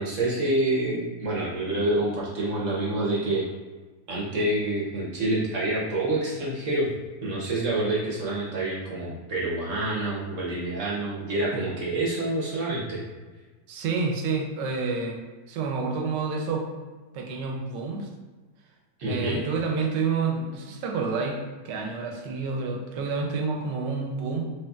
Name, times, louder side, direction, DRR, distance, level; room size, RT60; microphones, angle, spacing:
voice 1, 0.0-3.5 4.1-6.9 7.2-13.0 19.0-19.4, right 2 dB, 60° right, -5 dB, 0.8 m, -27 dB
voice 2, 13.7-15.2 15.5-16.7 17.1-18.1 19.1-24.5, right 4 dB, 80° right, 2 dB, 1.2 m, -29 dB
4.3 x 3.1 x 2.3 m, 1.4 s
omnidirectional pair, 1.9 m